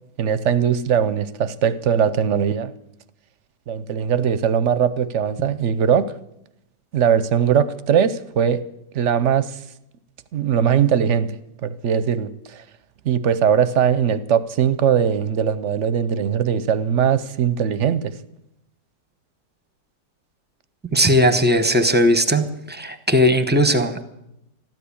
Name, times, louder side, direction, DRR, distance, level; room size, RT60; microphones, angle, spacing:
voice 1, 0.2-2.7 3.7-6.1 6.9-8.6 8.9-9.6 10.3-11.3 11.6-12.6 13.0-18.1, right 8 dB, 60° right, 15 dB, 0.8 m, -20 dB
voice 2, 20.9-24.0, equal, 10° right, 9 dB, 0.7 m, -18 dB
13.5 x 12.5 x 8.5 m, 0.83 s
omnidirectional pair, 1.8 m